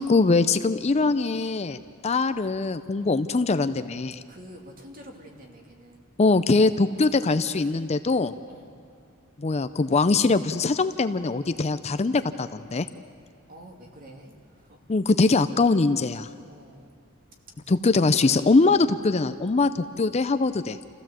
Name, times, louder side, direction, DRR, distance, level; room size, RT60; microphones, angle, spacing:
voice 1, 0.0-4.2 6.2-8.3 9.4-12.9 14.9-16.3 17.7-20.8, left 3 dB, 30° left, 12 dB, 0.5 m, -22 dB
voice 2, 4.3-6.1 6.9-7.1 8.5-8.7 13.5-14.8 16.5-16.9, equal, 45° right, 2 dB, 2.6 m, -48 dB
28.0 x 15.5 x 7.6 m, 2.3 s
head